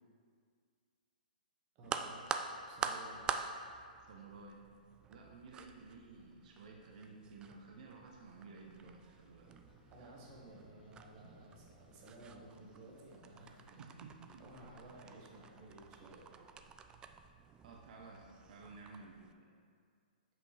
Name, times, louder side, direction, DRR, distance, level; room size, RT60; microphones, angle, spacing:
voice 1, 1.7-2.3 2.6-3.3 9.9-13.8 14.4-16.3, right 2 dB, 35° right, -3 dB, 1.6 m, -55 dB
sound 1, 1.8-19.3, right 6 dB, 15° right, 0.3 m, -47 dB
voice 2, 4.0-4.6 5.1-9.5 10.0-10.1 13.8-14.4 17.6-19.6, right 4 dB, 55° right, 0 dB, 0.8 m, -54 dB
sound 2, 9.7-15.4, left 3 dB, 80° left, 1.1 m, -66 dB
7.6 x 5.9 x 3.4 m, 2.1 s
hypercardioid pair, 135°, 5 cm